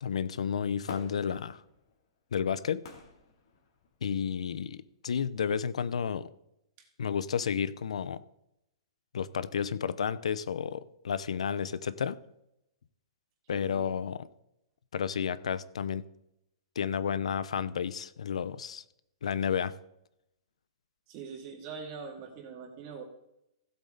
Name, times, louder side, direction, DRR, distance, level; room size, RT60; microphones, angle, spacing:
voice 1, 0.0-1.6 2.3-2.8 4.0-6.3 7.0-8.2 9.1-12.2 13.5-14.3 14.9-16.1 16.8-18.8 19.2-19.7, left 7 dB, 90° left, 16 dB, 0.6 m, -31 dB
Fireworks, 0.9-4.2 4.8-4.9, left 5 dB, 50° left, 2.6 m, -50 dB
voice 2, 13.5-14.0 21.1-23.0, right 5 dB, 30° right, 2 dB, 2.2 m, -43 dB
15.5 x 8.2 x 3.9 m, 0.82 s
hypercardioid pair, 170°, 3 cm